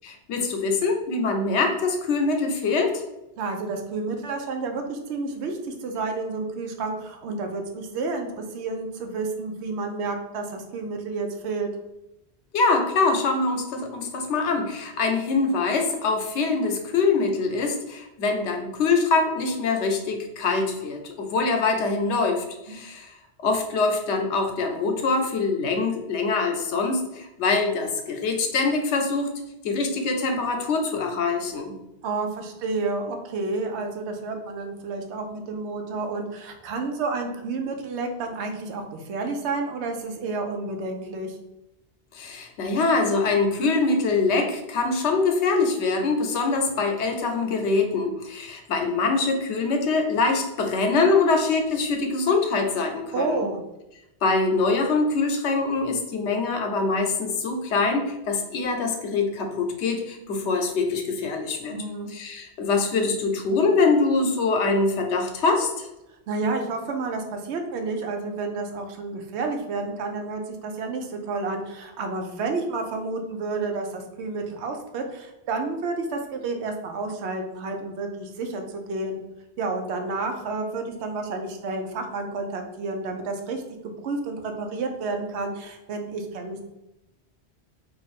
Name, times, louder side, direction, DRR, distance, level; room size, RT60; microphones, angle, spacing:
voice 1, 0.0-3.0 12.5-23.1 23.4-29.3 29.6-31.8 42.1-53.4 54.2-61.7 62.1-65.9, left 3 dB, 85° left, 4 dB, 0.9 m, -24 dB
voice 2, 3.4-11.7 22.7-22.8 32.0-41.4 53.1-53.6 61.6-62.1 66.3-79.2 79.6-83.6 84.0-86.6, right 3 dB, 85° right, 4 dB, 0.9 m, -30 dB
2.6 x 2.5 x 4.0 m, 0.92 s
omnidirectional pair, 1.1 m